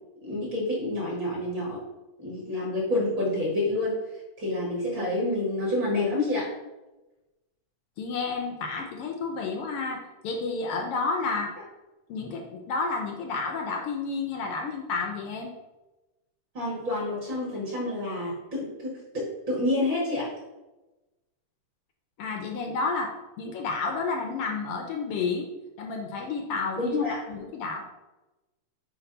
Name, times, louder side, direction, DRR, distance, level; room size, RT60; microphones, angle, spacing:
voice 1, 0.2-1.8 2.2-4.0 4.4-6.5 16.5-20.3 26.8-27.2, left 2 dB, 45° right, -5 dB, 2.4 m, -28 dB
voice 2, 8.0-11.5 12.1-15.5 22.2-25.5 25.8-27.0 27.3-27.8, left 4 dB, 70° left, 2 dB, 1.4 m, -31 dB
8.6 x 3.0 x 5.4 m, 1.1 s
omnidirectional pair, 3.3 m